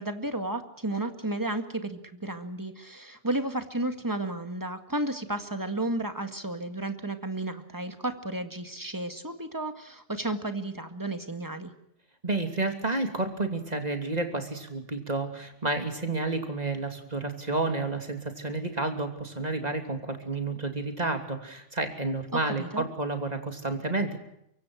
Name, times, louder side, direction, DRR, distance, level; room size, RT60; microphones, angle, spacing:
voice 1, 0.0-11.7 22.3-22.8, right 2 dB, 15° right, 8 dB, 1.9 m, -33 dB
voice 2, 12.2-24.2, right 2 dB, 35° right, 6 dB, 3.1 m, -30 dB
24.5 x 23.5 x 6.4 m, 0.79 s
omnidirectional pair, 1.2 m